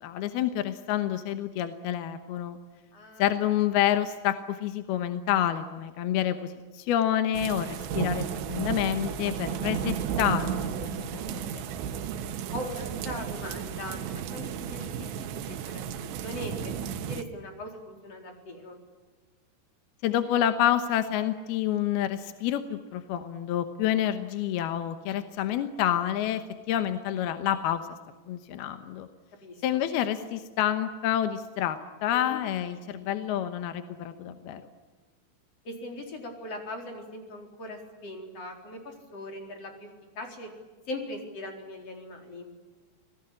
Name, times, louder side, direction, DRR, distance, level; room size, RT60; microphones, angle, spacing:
voice 1, 0.0-2.6 3.2-11.6 20.0-26.4 26.7-27.8 28.3-29.1 29.6-34.6, left 11 dB, 70° left, 9 dB, 2.8 m, -28 dB
voice 2, 2.9-3.3 8.9-9.1 12.5-15.1 15.3-16.7 17.1-18.8 29.4-29.6 32.1-32.4 35.6-39.9 40.1-40.5 40.9-42.5, left 1 dB, 35° left, 3 dB, 4.9 m, -40 dB
sound 1, 7.3-17.2, right 8 dB, 85° right, 3.6 m, -33 dB
26.5 x 19.5 x 10.0 m, 1.4 s
omnidirectional pair, 5.0 m